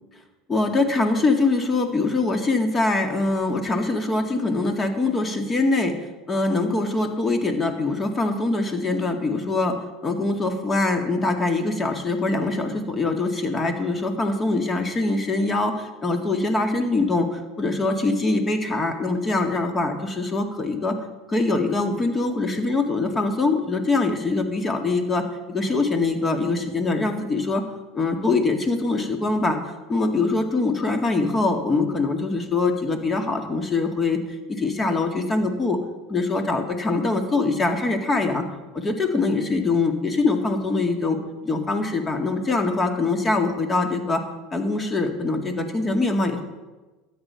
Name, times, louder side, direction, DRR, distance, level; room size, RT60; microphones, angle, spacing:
voice 1, 0.5-5.9 6.3-9.8 10.0-21.0 21.3-27.6 27.9-34.2 34.5-35.8 36.1-38.4 38.7-41.2 41.4-44.2 44.5-46.4, left 3 dB, 25° left, 5 dB, 2.0 m, -23 dB
13.0 x 9.1 x 5.8 m, 1.2 s
supercardioid pair, 100°, 0 cm